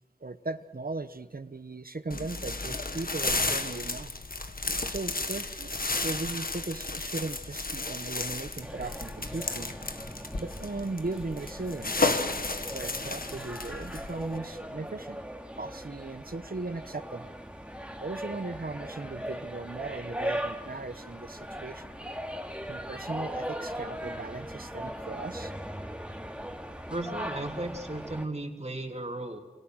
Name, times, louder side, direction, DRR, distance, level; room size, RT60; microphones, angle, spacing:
voice 1, 0.2-4.1 4.9-9.7 10.4-12.4 12.7-15.2 15.6-17.3 18.0-21.9 22.7-25.5, right 3 dB, 65° right, 12 dB, 1.1 m, -37 dB
sound 1, 2.1-14.4, left 3 dB, 65° left, 1.6 m, -33 dB
sound 2, 8.6-28.3, equal, 5° right, 2.4 m, -39 dB
voice 2, 26.9-29.4, right 2 dB, 40° right, 3 dB, 3.1 m, -35 dB
28.0 x 27.5 x 6.5 m, 1.3 s
wide cardioid pair, 45°, 16 cm